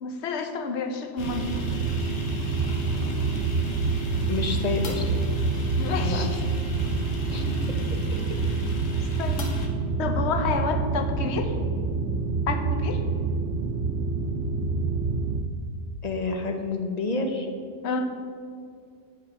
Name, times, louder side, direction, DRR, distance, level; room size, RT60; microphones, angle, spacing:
voice 1, 0.0-1.5 5.8-6.4 9.2-9.5 10.0-11.6 12.5-13.0 17.8-18.0, left 4 dB, 65° left, 6 dB, 1.0 m, -29 dB
sound 1, 1.2-9.7, left 2 dB, 80° left, 1.4 m, -39 dB
sound 2, 1.2-15.4, right 3 dB, 70° right, 0.9 m, -27 dB
voice 2, 4.3-5.0 6.0-6.4 7.1-7.5 16.0-17.5, left 4 dB, 40° left, 4 dB, 0.8 m, -29 dB
7.9 x 5.6 x 5.7 m, 2.3 s
omnidirectional pair, 1.3 m